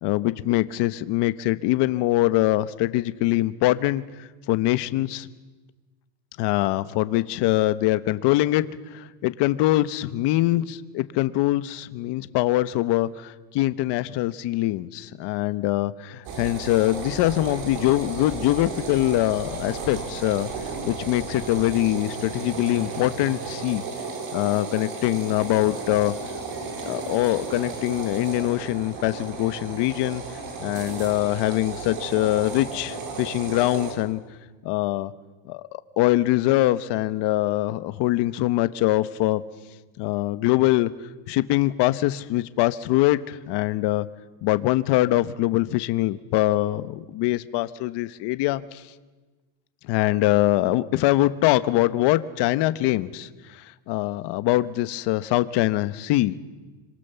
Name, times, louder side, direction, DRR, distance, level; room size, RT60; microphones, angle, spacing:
voice 1, 0.0-4.0 4.5-5.3 6.4-8.6 8.9-20.5 20.8-23.8 24.3-26.1 26.9-30.2 30.6-34.2 34.6-35.1 35.5-35.6 36.0-39.4 40.0-40.9 41.3-44.1 44.4-48.8 49.9-53.3 53.9-56.4, left 16 dB, 55° left, 13 dB, 1.2 m, -23 dB
sound 1, 16.2-33.9, right 4 dB, 65° right, 6.2 m, -34 dB
27.0 x 24.5 x 7.0 m, 1.3 s
cardioid pair, 150°, 49 cm